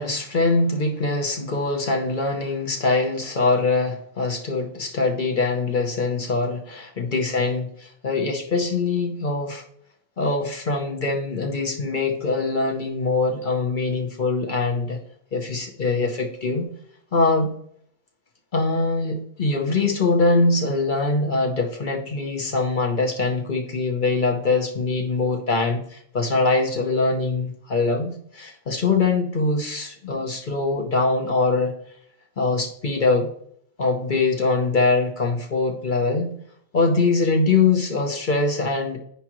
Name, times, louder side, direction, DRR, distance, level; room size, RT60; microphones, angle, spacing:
voice 1, 0.0-9.6 10.2-15.0 15.3-16.7 17.1-17.5 18.5-31.7 32.4-33.3 33.8-36.3 36.7-39.0, left 3 dB, 40° left, 2 dB, 0.8 m, -23 dB
8.2 x 4.9 x 3.0 m, 0.66 s
omnidirectional pair, 1.8 m